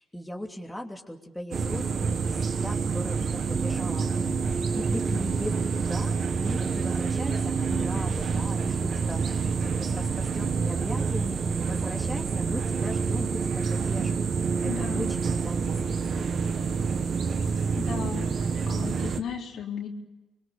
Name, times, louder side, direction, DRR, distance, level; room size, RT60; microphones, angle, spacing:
voice 1, 0.0-16.4, left 1 dB, 5° left, 1 dB, 2.9 m, -39 dB
sound 1, 1.5-19.2, right 5 dB, 55° right, 1.7 m, -27 dB
voice 2, 14.7-15.1 17.8-18.3 18.6-19.9, left 7 dB, 70° left, 0 dB, 4.0 m, -35 dB
25.5 x 22.5 x 7.0 m, 1.1 s
cardioid pair, 90°, 0 cm